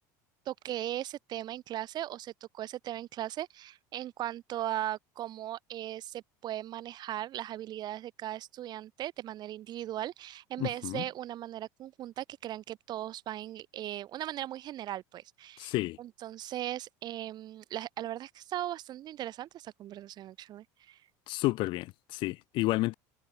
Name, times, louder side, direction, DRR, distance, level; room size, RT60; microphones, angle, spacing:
voice 1, 0.5-21.0, right 13 dB, 45° right, 5.2 m, -38 dB
voice 2, 10.6-11.0 15.6-16.0 21.3-22.9, left 20 dB, 60° left, 1.0 m, -31 dB
supercardioid pair, 115°, 10 cm